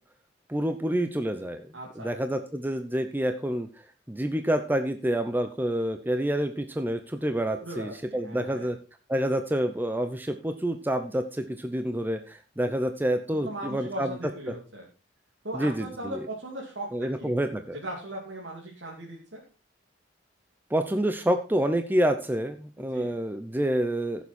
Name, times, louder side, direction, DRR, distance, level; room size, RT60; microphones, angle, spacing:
voice 1, 0.5-1.6 2.0-3.7 4.1-8.8 9.1-14.1 15.5-16.2 16.9-17.8 20.7-24.2, right 1 dB, 10° right, 8 dB, 0.7 m, -28 dB
voice 2, 1.7-2.2 7.6-8.7 13.3-14.9 15.4-16.9 17.2-17.3 17.8-19.4 22.9-23.1, right 1 dB, 70° right, -3 dB, 2.8 m, -38 dB
15.5 x 7.2 x 4.3 m, 0.33 s
head